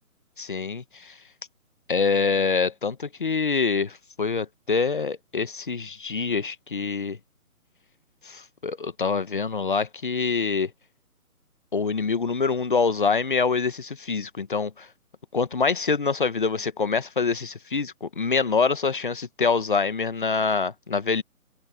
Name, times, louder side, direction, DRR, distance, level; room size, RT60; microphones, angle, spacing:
voice 1, 0.4-1.2 1.9-7.2 8.2-10.7 11.7-14.9 15.3-21.2, left 5 dB, 35° left, 1.1 m, -25 dB
open air
hypercardioid pair, 175°, 43 cm